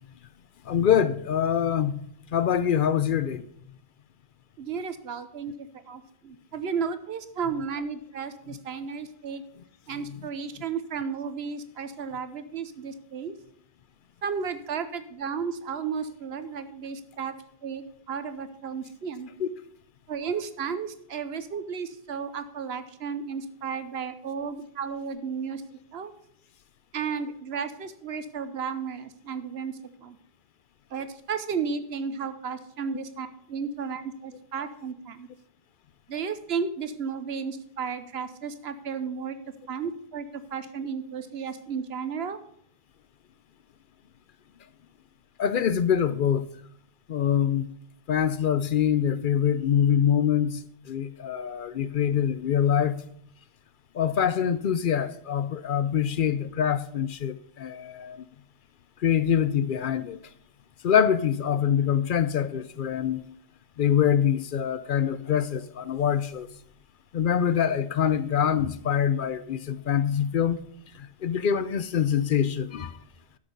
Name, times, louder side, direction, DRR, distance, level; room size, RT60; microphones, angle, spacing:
voice 1, 0.7-2.0 2.3-3.4 19.4-19.5 45.4-46.5 47.1-47.7 48.1-50.6 50.9-53.0 53.9-58.3 59.0-60.2 60.8-63.2 63.8-66.5 67.1-70.6 71.2-72.9, left 8 dB, 60° left, 0.7 m, -24 dB
voice 2, 4.6-9.4 9.9-13.3 14.2-17.3 17.6-19.3 20.1-25.6 25.9-26.1 26.9-30.2 30.9-35.3 36.1-39.4 39.7-42.4, right 6 dB, 80° right, 1.1 m, -33 dB
12.0 x 6.2 x 5.2 m
omnidirectional pair, 1.0 m